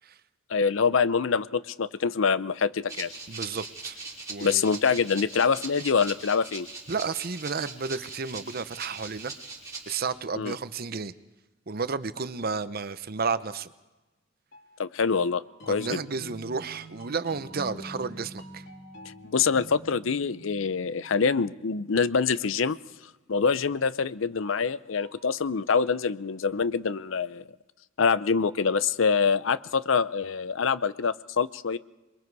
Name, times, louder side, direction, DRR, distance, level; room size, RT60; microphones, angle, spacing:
voice 1, 0.5-3.1 4.4-6.7 10.4-10.6 14.8-16.0 19.3-22.8 23.3-27.4 28.0-31.8, left 5 dB, 80° left, 16 dB, 0.6 m, -25 dB
Rattle (instrument), 2.9-10.1, right 3 dB, 15° right, 3.8 m, -41 dB
voice 2, 3.3-4.0 4.3-4.6 6.9-9.3 9.9-11.1 11.7-13.7 15.7-18.7, right 5 dB, 50° right, 13 dB, 0.8 m, -32 dB
sound 1, 14.5-22.2 24.4-25.3, right 1 dB, 60° left, 3.0 m, -47 dB
27.5 x 22.0 x 4.7 m, 1.1 s
head